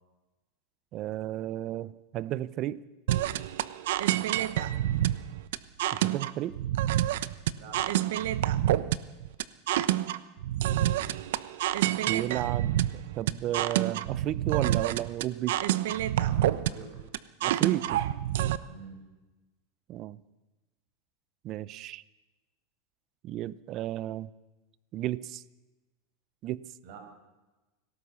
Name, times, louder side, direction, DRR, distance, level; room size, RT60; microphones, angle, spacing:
voice 1, 0.9-2.8 5.9-6.6 12.1-15.6 17.4-18.0 19.9-20.2 21.4-22.0 23.2-24.3 24.9-25.4 26.4-26.7, right 13 dB, 35° right, 19 dB, 0.7 m, -33 dB
sound 1, 3.1-18.6, right 13 dB, 75° right, 0.9 m, -28 dB
voice 2, 7.5-8.6 16.2-17.0 18.7-19.0 26.8-27.0, right 5 dB, 55° right, 4 dB, 6.5 m, -48 dB
26.0 x 17.5 x 7.1 m, 1.1 s
supercardioid pair, 150°, 0 cm